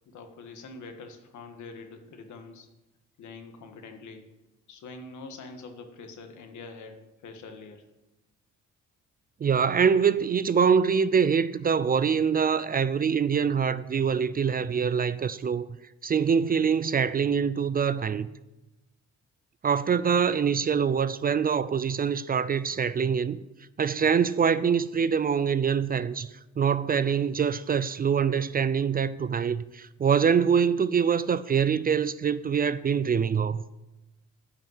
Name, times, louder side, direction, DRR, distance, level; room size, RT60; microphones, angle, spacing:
voice 1, 0.1-2.7 3.2-4.2 4.7-7.8, left 3 dB, 75° left, 1.6 m, -44 dB
voice 2, 9.4-15.7 16.0-18.3 19.6-23.4 23.8-26.3 26.6-33.6, right 6 dB, 30° right, 0.4 m, -24 dB
10.0 x 5.6 x 7.8 m
cardioid pair, 90°, 30 cm